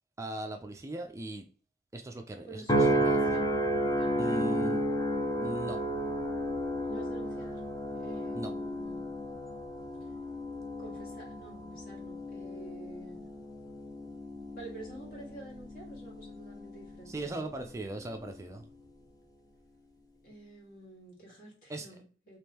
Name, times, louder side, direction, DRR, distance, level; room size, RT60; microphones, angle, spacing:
voice 1, 0.2-1.5 1.9-3.2 4.2-4.8 5.4-5.8 8.3-8.5 17.1-18.7 21.7-21.9, right 1 dB, 15° right, 4 dB, 0.4 m, -38 dB
voice 2, 2.4-3.5 3.9-4.5 6.8-7.6 7.9-9.1 10.8-13.3 14.5-17.3 20.2-22.4, right 2 dB, 55° left, -3 dB, 1.7 m, -49 dB
sound 1, 2.7-17.2 17.7-18.1, right 1 dB, 20° left, 0.6 m, -33 dB
3.5 x 3.0 x 2.8 m, 0.42 s
head